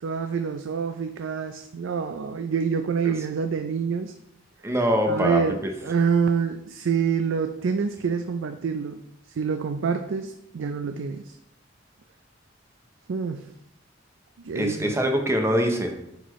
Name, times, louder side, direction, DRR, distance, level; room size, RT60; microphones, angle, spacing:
voice 1, 0.0-4.1 5.1-9.0 9.4-11.4 13.1-13.5 14.4-14.9, right 6 dB, 80° right, 8 dB, 0.4 m, -26 dB
voice 2, 4.6-5.6 14.5-15.9, equal, 15° right, 3 dB, 0.8 m, -23 dB
9.1 x 4.2 x 3.1 m, 0.79 s
head